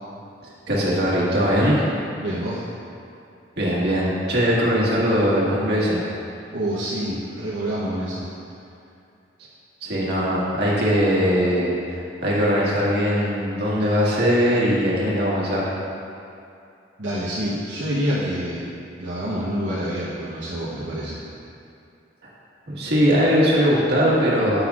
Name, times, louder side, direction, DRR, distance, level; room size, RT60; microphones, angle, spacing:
voice 1, 0.7-1.8 3.6-6.0 9.8-15.6 22.7-24.6, equal, 60° right, -7 dB, 1.7 m, -20 dB
voice 2, 2.2-2.6 6.5-8.3 17.0-18.7 19.0-21.2, equal, 80° right, -9 dB, 1.0 m, -27 dB
9.5 x 6.8 x 2.4 m, 2.6 s
head